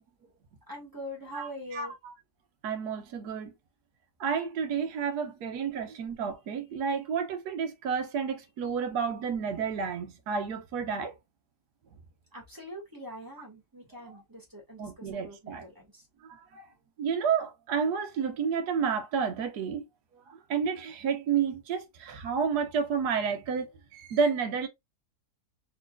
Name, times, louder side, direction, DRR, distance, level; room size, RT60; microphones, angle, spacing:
voice 1, 0.7-1.9 12.3-16.0, equal, 15° right, 1.5 m, -43 dB
voice 2, 1.3-1.9 2.6-3.5 4.2-11.1 14.8-15.6 16.5-16.6 17.0-19.8 20.3-24.7, right 6 dB, 70° right, 1.4 m, -30 dB
4.2 x 3.4 x 2.3 m
omnidirectional pair, 1.8 m